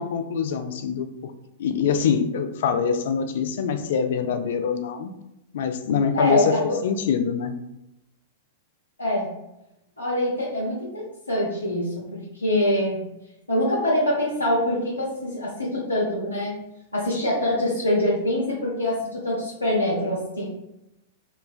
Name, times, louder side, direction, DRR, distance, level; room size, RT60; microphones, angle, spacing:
voice 1, 0.0-1.3 1.6-5.1 5.5-7.6, left 6 dB, 60° left, 8 dB, 0.3 m, -24 dB
voice 2, 6.1-6.8 9.0-9.3 10.0-13.0 13.5-16.6 16.9-20.5, left 1 dB, 90° left, -6 dB, 0.7 m, -24 dB
3.1 x 2.2 x 2.4 m, 0.87 s
figure-of-eight pair, 100°, 0 cm